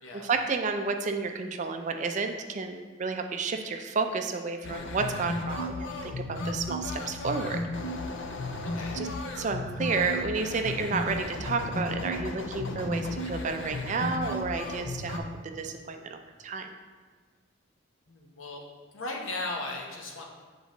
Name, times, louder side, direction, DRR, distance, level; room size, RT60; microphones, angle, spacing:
voice 1, 0.1-7.6 8.9-9.1 9.4-16.7, right 4 dB, 35° right, 5 dB, 0.4 m, -31 dB
sound 1, 4.6-15.2, left 2 dB, 60° left, 0.5 m, -34 dB
voice 2, 8.6-9.0 18.1-18.6 18.9-20.2, left 2 dB, 85° left, 0 dB, 1.0 m, -37 dB
7.1 x 4.0 x 3.8 m, 1.5 s
head